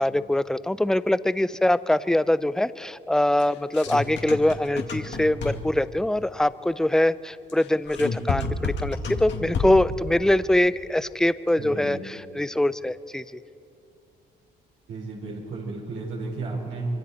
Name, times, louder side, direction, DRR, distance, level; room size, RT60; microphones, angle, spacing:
voice 1, 0.0-13.2, left 1 dB, 5° left, 15 dB, 0.5 m, -23 dB
sound 1, 3.4-5.8 7.5-10.0, left 4 dB, 65° left, 2.3 m, -30 dB
voice 2, 11.6-12.0 14.9-16.9, right 3 dB, 80° right, -4 dB, 4.8 m, -34 dB
25.0 x 24.5 x 4.3 m, 2.6 s
cardioid pair, 90°, 20 cm